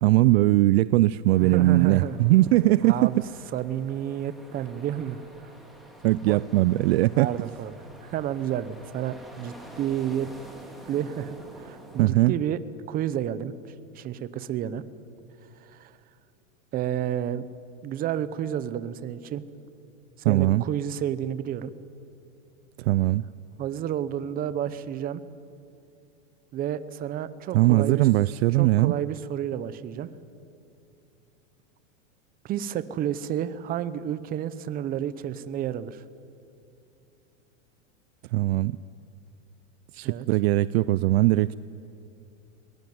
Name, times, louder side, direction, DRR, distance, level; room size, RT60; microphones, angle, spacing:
voice 1, 0.0-3.1 6.0-7.3 12.0-12.3 20.2-20.6 22.8-23.2 27.5-28.9 38.3-38.8 39.9-41.5, right 17 dB, 55° right, 18 dB, 0.5 m, -20 dB
sound 1, 1.3-12.1, right 1 dB, ahead, 2.6 m, -48 dB
voice 2, 1.4-2.2 2.8-3.2 3.5-5.5 6.3-6.4 7.2-10.3 10.9-12.6 12.9-13.5 13.9-14.8 15.6-15.9 16.7-17.5 17.8-19.4 20.3-21.7 23.6-25.2 26.5-28.1 28.6-30.1 32.4-36.0 40.0-40.3, right 10 dB, 20° right, 15 dB, 0.7 m, -30 dB
22.0 x 19.0 x 9.3 m, 2.6 s
supercardioid pair, 150°, 39 cm